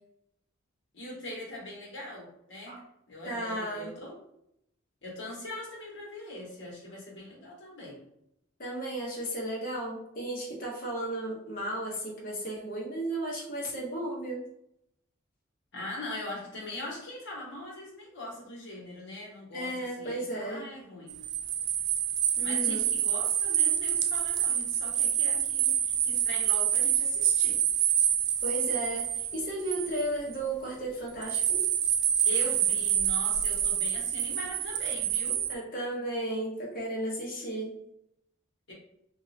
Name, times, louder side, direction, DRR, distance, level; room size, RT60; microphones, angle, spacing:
voice 1, 0.9-2.8 3.1-4.2 5.0-8.0 15.7-21.2 22.4-27.6 32.2-35.4 38.7-38.8, left 1 dB, 60° left, -3 dB, 1.3 m, -41 dB
voice 2, 3.2-3.9 8.6-14.4 19.5-20.7 22.4-22.9 28.4-31.6 35.5-37.8, right 1 dB, 45° left, -3 dB, 0.9 m, -34 dB
sound 1, 21.1-30.3 31.2-35.6, right 9 dB, 55° right, 0.3 m, -27 dB
3.1 x 2.7 x 2.6 m, 0.78 s
head